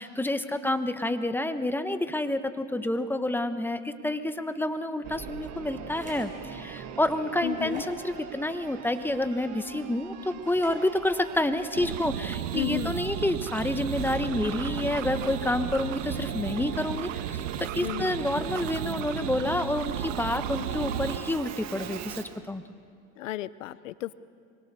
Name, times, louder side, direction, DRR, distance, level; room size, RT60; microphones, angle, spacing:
voice 1, 0.0-22.6, left 1 dB, 5° left, 9 dB, 1.2 m, -29 dB
Singing / Musical instrument, 5.0-22.4, right 9 dB, 45° right, 1.6 m, -41 dB
sound 1, 5.9-6.3 6.8-6.9 7.6-8.0 8.9-9.3 10.4-10.8, right 2 dB, 20° right, 7.4 m, -46 dB
voice 2, 7.4-7.8 12.5-13.0 17.8-18.1 23.2-24.1, left 14 dB, 90° left, 16 dB, 0.8 m, -33 dB
sound 2, 11.7-21.2, right 10 dB, 85° right, 1.3 m, -34 dB
25.0 x 22.5 x 6.9 m, 2.3 s
supercardioid pair, 105°, 37 cm